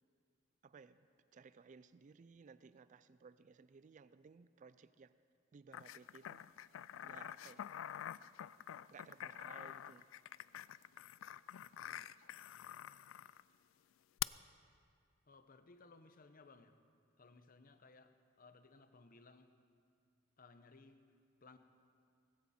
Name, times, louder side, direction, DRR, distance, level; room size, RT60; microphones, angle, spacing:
voice 1, 0.6-1.0 1.3-5.2 5.5-6.4 7.0-7.7 8.9-10.1, right 5 dB, 40° right, 14 dB, 0.4 m, -59 dB
sound 1, 5.7-13.4 14.2-14.3, left 11 dB, 90° left, 0.3 m, -47 dB
voice 2, 15.3-16.7 17.2-19.5 20.4-21.1 21.4-21.6, left 3 dB, 45° left, 9 dB, 0.9 m, -61 dB
18.5 x 16.5 x 4.3 m, 2.4 s
head